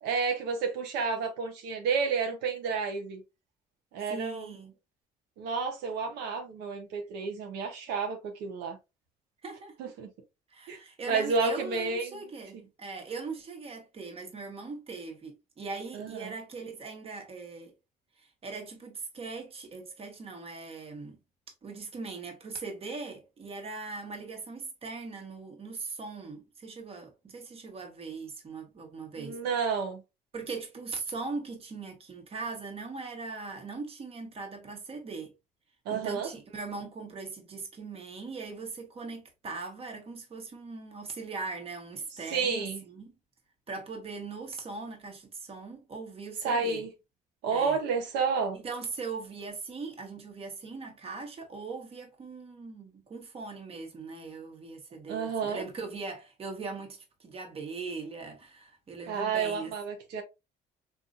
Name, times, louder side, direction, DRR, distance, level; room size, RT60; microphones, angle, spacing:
voice 1, 0.0-3.2 3.9-4.5 5.4-8.8 9.8-10.1 10.7-10.8 11.1-12.2 15.9-16.3 29.2-30.0 35.9-36.3 42.3-42.8 46.4-46.9 47.4-48.6 55.1-55.6 59.1-60.2, right 5 dB, 90° right, 0.8 m, -30 dB
voice 2, 4.1-4.7 9.4-9.9 10.5-17.7 18.2-21.2 21.6-29.4 30.3-35.3 35.9-43.1 43.7-46.8 47.5-47.8 48.5-59.7, right 4 dB, 35° right, 1.2 m, -40 dB
4.0 x 2.7 x 2.4 m
cardioid pair, 110°, 17 cm